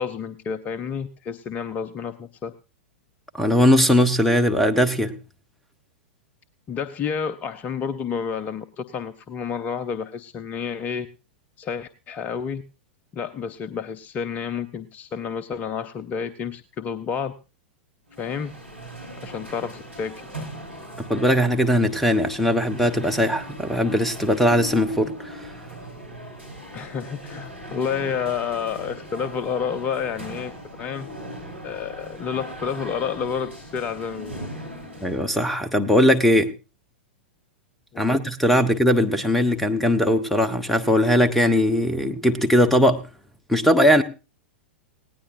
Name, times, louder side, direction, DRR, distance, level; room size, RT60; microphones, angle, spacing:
voice 1, 0.0-2.5 6.7-11.1 11.6-12.6 13.1-17.3 18.2-18.5 19.2-20.4 26.7-30.5 30.8-31.1 31.6-34.5 37.9-38.2, left 7 dB, 25° left, 13 dB, 0.7 m, -30 dB
voice 2, 3.4-5.1 21.1-25.3 35.0-36.5 38.0-43.0 43.5-44.0, equal, ahead, 8 dB, 1.2 m, -19 dB
sound 1, 18.1-35.4, equal, 90° right, 4.5 m, -39 dB
19.0 x 17.5 x 2.6 m, 0.31 s
figure-of-eight pair, 100°, 6 cm